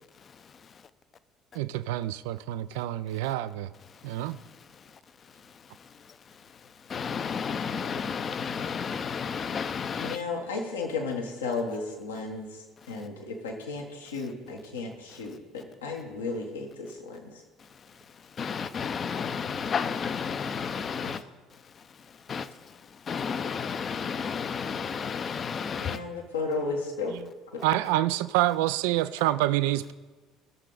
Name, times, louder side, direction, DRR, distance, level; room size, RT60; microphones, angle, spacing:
voice 1, 1.5-3.7 4.0-4.4 27.1-27.3 27.6-29.9, right 15 dB, 70° right, 0.3 m, -27 dB
voice 2, 6.9-10.2 18.4-21.2 22.3-22.5 23.1-26.0, left 6 dB, 40° left, 0.6 m, -31 dB
voice 3, 10.0-12.5 12.9-17.2 21.0-21.3 25.8-27.1 27.5-27.6, left 3 dB, 85° left, 1.2 m, -34 dB
16.5 x 6.5 x 3.9 m
hypercardioid pair, 60°, 0 cm